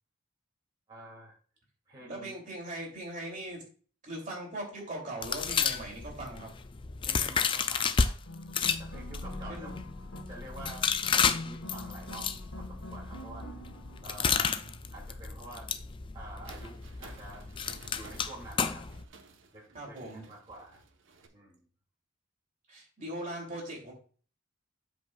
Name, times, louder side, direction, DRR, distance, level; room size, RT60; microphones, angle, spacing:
voice 1, 0.9-1.4 1.9-2.4 7.0-8.1 8.8-9.7 10.3-10.9 11.2-13.5 14.0-14.6 14.9-15.7 16.1-17.5 17.9-18.9 19.5-20.8 21.3-21.7, right 2 dB, 20° right, -6 dB, 2.5 m, -48 dB
voice 2, 2.1-3.6 4.0-6.5 9.5-9.7 14.2-14.8 19.7-20.2 22.7-23.9, right 1 dB, 40° right, -1 dB, 2.8 m, -40 dB
sound 1, 5.2-8.1 8.5-19.0, left 6 dB, 25° left, 0.4 m, -32 dB
sound 2, 8.2-14.9, left 1 dB, 85° left, 1.5 m, -45 dB
sound 3, 16.4-21.3, right 3 dB, 65° right, 1.0 m, -55 dB
13.0 x 5.2 x 2.4 m, 0.41 s
head